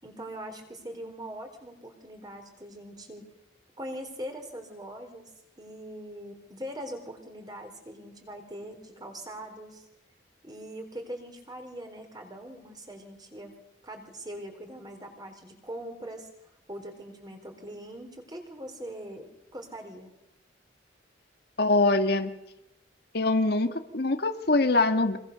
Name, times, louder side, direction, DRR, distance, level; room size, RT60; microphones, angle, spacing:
voice 1, 0.0-3.3 3.8-5.3 5.6-9.9 10.4-13.5 13.8-16.3 16.7-19.2 19.5-20.1, right 1 dB, 20° right, 4 dB, 4.2 m, -41 dB
voice 2, 21.6-22.3 23.1-25.2, left 2 dB, 55° left, 7 dB, 1.6 m, -23 dB
25.0 x 25.0 x 6.8 m, 0.88 s
head